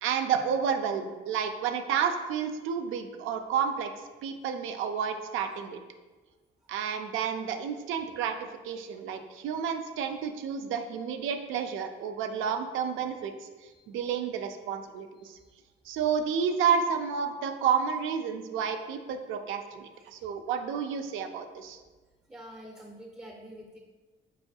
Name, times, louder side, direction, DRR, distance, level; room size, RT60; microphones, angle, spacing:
voice 1, 0.0-3.9 4.2-5.8 6.7-8.4 8.6-13.3 13.9-15.4 15.9-21.8, right 7 dB, 85° right, 6 dB, 0.4 m, -30 dB
voice 2, 15.2-15.5 19.9-20.1 22.3-23.8, equal, 10° right, -1 dB, 0.5 m, -47 dB
4.4 x 4.1 x 2.3 m, 1.3 s
cardioid pair, 90°, 20 cm